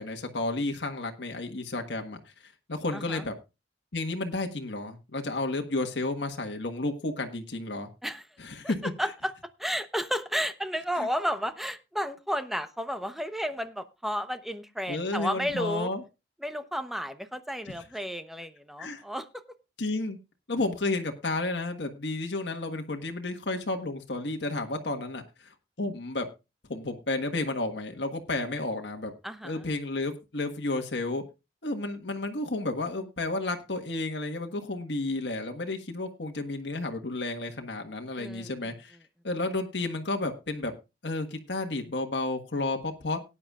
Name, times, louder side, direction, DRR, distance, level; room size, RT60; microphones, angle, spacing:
voice 1, 0.0-3.3 3.9-7.9 8.4-8.9 11.0-11.1 14.9-16.0 17.6-17.9 18.8-19.0 19.8-20.2 20.5-26.3 26.7-29.1 29.4-31.2 31.6-39.0 39.2-40.7 41.0-43.2, left 2 dB, 70° left, 4 dB, 1.5 m, -32 dB
voice 2, 2.9-3.2 8.0-8.2 8.6-8.7 9.0-9.3 9.6-15.9 16.4-19.3 29.2-29.5 38.2-38.7, equal, ahead, 10 dB, 0.9 m, -32 dB
18.0 x 9.8 x 2.4 m, 0.27 s
head